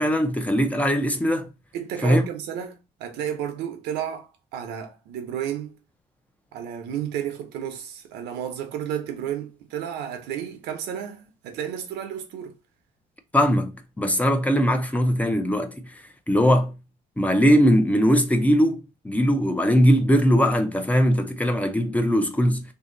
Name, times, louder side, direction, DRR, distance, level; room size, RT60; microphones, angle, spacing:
voice 1, 0.0-1.5 2.0-2.2 13.3-13.7 14.0-16.7 17.2-22.6, equal, 10° left, 0.6 m, -20 dB
voice 2, 1.7-5.8 6.5-12.6, right 9 dB, 85° right, 0.8 m, -32 dB
2.8 x 2.8 x 3.8 m
cardioid pair, 110°, 17 cm